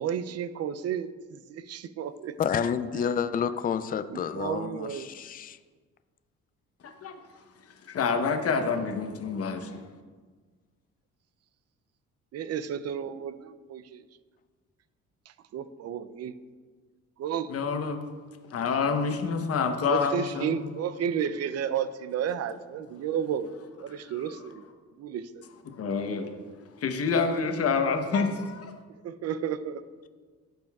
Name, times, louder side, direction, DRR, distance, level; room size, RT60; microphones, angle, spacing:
voice 1, 0.0-2.4 2.6-2.7 4.1-5.1 12.3-14.1 15.3-16.3 17.2-17.6 19.9-23.5 23.8-24.6 25.0-25.4 29.0-29.8, right 8 dB, 55° right, 14 dB, 0.5 m, -32 dB
voice 2, 2.4-5.6, left 7 dB, 30° left, 12 dB, 0.4 m, -29 dB
voice 3, 7.9-9.8 17.5-18.0 18.5-20.5 25.7-26.3 26.8-28.7, left 5 dB, 50° left, 5 dB, 0.9 m, -27 dB
13.5 x 5.2 x 2.4 m, 1.4 s
cardioid pair, 90°, 30 cm